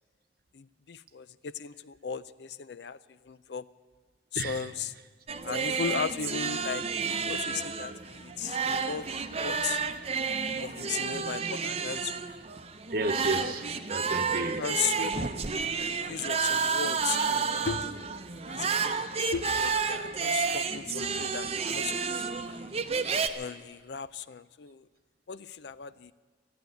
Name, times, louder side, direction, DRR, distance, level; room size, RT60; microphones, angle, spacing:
voice 1, 0.5-3.7 4.3-4.9 5.4-9.8 10.6-12.3 13.4-13.6 14.6-15.3 15.8-17.9 18.5-19.0 19.3-22.2 22.5-22.6 23.3-24.9 25.3-26.1, left 7 dB, 70° left, 16 dB, 0.5 m, -36 dB
voice 2, 4.3-4.7 12.9-15.3, right 2 dB, 55° right, 8 dB, 1.0 m, -33 dB
sound 1, 5.3-23.3, right 5 dB, 35° right, 0.7 m, -31 dB
13.0 x 11.5 x 9.4 m, 1.4 s
head